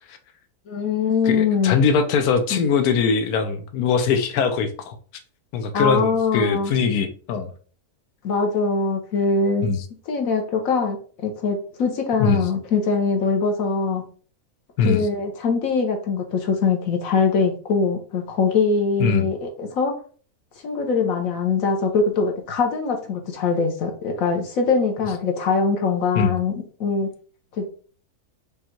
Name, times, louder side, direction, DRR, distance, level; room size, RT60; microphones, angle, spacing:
voice 1, 0.7-1.8 2.5-2.6 5.7-6.7 8.2-9.7 10.1-11.0 11.2-14.0 14.8-19.9 20.6-26.5 26.8-27.1 27.6-27.7, left 4 dB, 70° left, 3 dB, 1.2 m, -22 dB
voice 2, 1.2-4.9 5.5-7.5 9.6-9.8 12.2-12.5 14.8-15.1 19.0-19.3 26.1-26.3, left 5 dB, 90° left, 7 dB, 1.2 m, -21 dB
5.2 x 2.3 x 4.4 m, 0.43 s
omnidirectional pair, 1.6 m